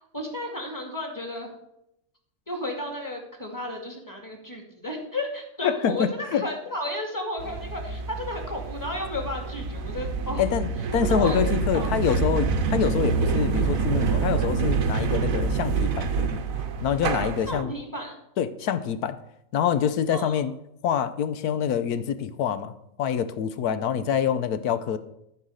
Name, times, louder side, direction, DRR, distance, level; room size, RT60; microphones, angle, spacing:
voice 1, 0.1-1.5 2.5-10.4 11.0-11.4 11.7-11.9 17.5-18.2 20.1-20.4, left 1 dB, 10° left, 1 dB, 2.0 m, -33 dB
voice 2, 5.6-6.5 10.4-16.4 16.8-17.7 18.4-19.2 19.5-20.5 20.8-22.7 23.0-25.0, left 8 dB, 80° left, 12 dB, 1.2 m, -26 dB
sound 1, 7.4-17.6, right 5 dB, 65° right, 1.2 m, -26 dB
13.5 x 4.8 x 6.4 m, 0.80 s
omnidirectional pair, 1.6 m